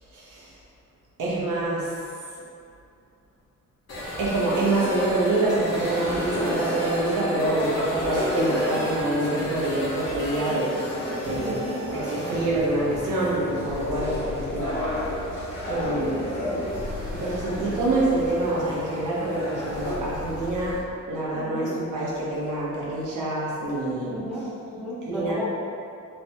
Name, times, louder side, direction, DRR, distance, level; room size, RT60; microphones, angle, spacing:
voice 1, 0.1-0.5 1.2-1.9 4.2-10.8 11.2-11.6 11.9-14.8 15.1-15.2 15.7-16.1 17.1-24.2 25.1-25.5, right 2 dB, 75° right, -6 dB, 0.8 m, -26 dB
sound 1, 3.9-20.8, left 1 dB, 55° left, 0.9 m, -35 dB
sound 2, 5.0-19.9, left 1 dB, 90° left, 1.0 m, -32 dB
voice 2, 11.3-11.8 15.9-16.5 21.3-21.7 24.1-25.5, left 1 dB, ahead, -9 dB, 0.6 m, -33 dB
3.3 x 2.1 x 2.8 m, 2.5 s
wide cardioid pair, 135°, 31 cm